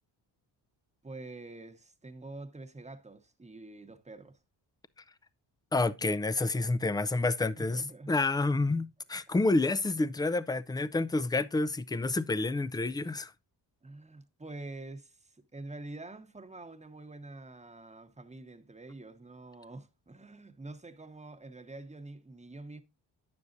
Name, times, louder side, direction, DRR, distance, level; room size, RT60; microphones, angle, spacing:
voice 1, 1.0-4.4 7.6-8.1 8.4-8.5 13.8-22.8, right 2 dB, 15° right, 1.1 m, -46 dB
voice 2, 5.7-7.8 8.1-13.3, left 2 dB, 10° left, 0.4 m, -29 dB
9.4 x 7.0 x 2.6 m
cardioid pair, 70°, 47 cm